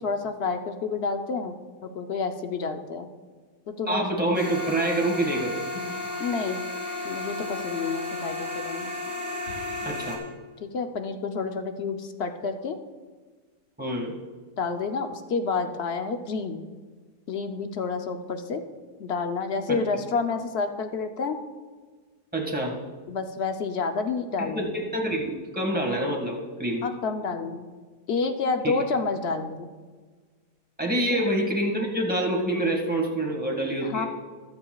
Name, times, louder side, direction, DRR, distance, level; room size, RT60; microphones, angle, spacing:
voice 1, 0.0-1.6 1.8-3.1 3.7-4.1 6.2-6.7 7.0-8.9 10.6-12.8 14.6-16.7 17.3-18.6 19.0-21.4 23.1-24.7 26.8-27.7 28.1-29.7 31.1-31.2 33.8-34.1, left 4 dB, 55° left, 6 dB, 0.7 m, -29 dB
voice 2, 3.9-5.6 9.8-10.2 13.8-14.1 19.7-19.8 22.3-22.8 24.4-26.8 28.6-28.8 30.8-34.1, right 1 dB, 5° right, -1 dB, 1.7 m, -26 dB
sound 1, 4.3-10.2, left 2 dB, 85° left, 3.0 m, -33 dB
21.5 x 8.0 x 2.3 m, 1.4 s
omnidirectional pair, 1.7 m